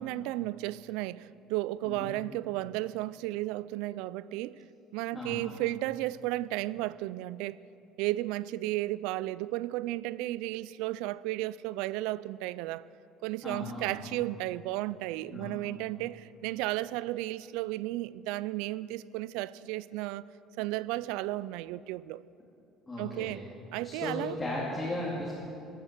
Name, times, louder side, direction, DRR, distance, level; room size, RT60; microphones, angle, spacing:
voice 1, 0.0-4.6 4.9-7.6 8.0-12.8 13.2-20.2 20.6-22.2 23.0-23.4 23.7-24.4, right 17 dB, 90° right, 0.3 m, -34 dB
voice 2, 5.1-5.5 13.4-14.0 15.3-15.6 22.9-23.3 23.8-25.3, left 1 dB, 10° left, 2.3 m, -36 dB
16.5 x 9.3 x 7.4 m
cardioid pair, 170°, 0 cm